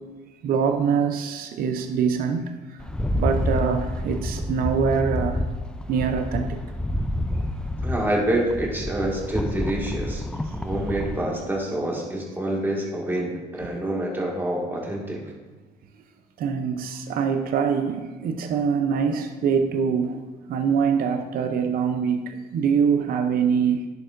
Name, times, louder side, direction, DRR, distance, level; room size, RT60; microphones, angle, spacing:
voice 1, 0.4-2.5 3.2-5.4 5.9-6.5 16.4-20.2 20.5-23.9, right 6 dB, 60° right, 5 dB, 0.6 m, -24 dB
Rattle, 2.8-11.3, left 1 dB, 5° left, 0.4 m, -28 dB
voice 2, 7.8-10.2 10.5-15.2, right 1 dB, 10° right, -3 dB, 1.9 m, -27 dB
10.5 x 6.8 x 2.6 m, 1.2 s
cardioid pair, 110°, 17 cm